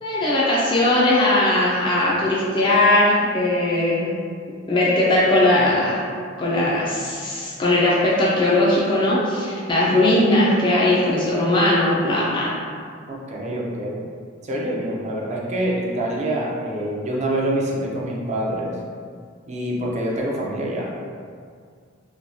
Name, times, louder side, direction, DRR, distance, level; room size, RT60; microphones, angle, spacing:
voice 1, 0.0-4.2 4.7-6.0 6.4-12.5, left 1 dB, 25° left, -6 dB, 0.4 m, -19 dB
voice 2, 13.1-14.1 14.4-18.8 19.5-20.9, right 1 dB, 35° right, -3 dB, 0.4 m, -26 dB
3.1 x 2.2 x 2.6 m, 2.1 s
head